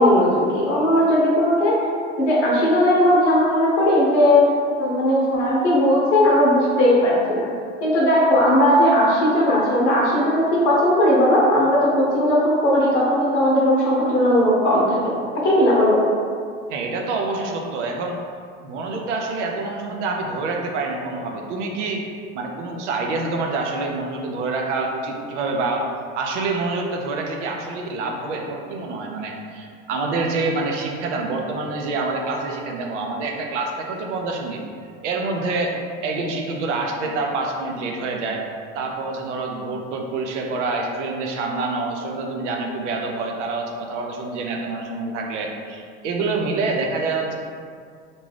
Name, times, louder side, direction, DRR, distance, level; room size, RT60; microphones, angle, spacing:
voice 1, 0.0-1.8 2.2-4.5 4.8-7.5 7.8-15.2 15.4-16.0, left 1 dB, 80° left, -4 dB, 0.7 m, -17 dB
voice 2, 16.7-18.2 18.6-22.0 22.3-25.9 26.1-34.6 35.0-38.4 38.7-47.3, right 3 dB, 80° right, 1 dB, 0.6 m, -26 dB
2.6 x 2.2 x 3.2 m, 2.2 s
hypercardioid pair, 90°, 35 cm